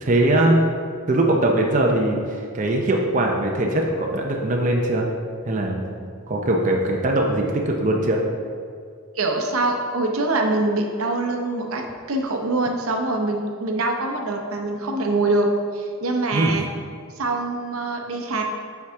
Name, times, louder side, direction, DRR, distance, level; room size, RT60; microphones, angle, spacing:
voice 1, 0.0-0.6 1.1-5.1 5.5-5.8 6.3-8.2 16.3-16.6, right 1 dB, 35° right, 0 dB, 0.5 m, -21 dB
voice 2, 9.2-11.8 12.1-15.5 15.7-16.6 17.2-18.4, right 2 dB, 85° right, 3 dB, 0.7 m, -24 dB
7.1 x 4.7 x 3.6 m, 2.2 s
head